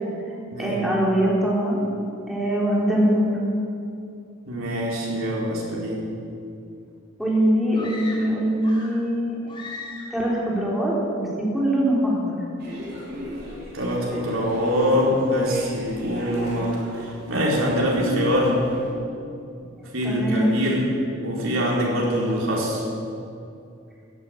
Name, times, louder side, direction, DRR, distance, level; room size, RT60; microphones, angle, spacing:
voice 1, 0.6-1.8 2.3-3.3 7.2-9.5 10.1-12.4 20.0-20.5, right 1 dB, ahead, -5 dB, 3.9 m, -22 dB
voice 2, 4.5-6.1 13.7-18.6 19.9-20.9 21.2-22.8, equal, 75° right, -3 dB, 4.4 m, -24 dB
sound 1, 7.7-9.1 9.5-10.3, left 3 dB, 25° left, 3.1 m, -38 dB
sound 2, 12.6-18.9, equal, 55° right, 4.7 m, -35 dB
15.0 x 10.5 x 8.9 m, 2.6 s
head